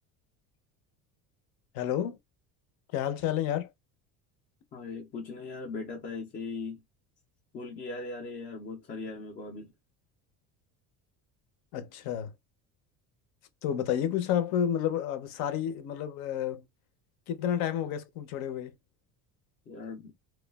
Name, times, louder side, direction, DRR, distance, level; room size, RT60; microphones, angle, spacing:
voice 1, 1.7-2.2 2.9-3.7 11.7-12.3 13.6-16.7 17.3-18.7, left 10 dB, 70° left, 0.7 m, -30 dB
voice 2, 4.7-6.8 7.5-9.7 19.7-20.1, left 3 dB, 25° left, 0.3 m, -39 dB
3.1 x 2.2 x 2.2 m
cardioid pair, 175°, 36 cm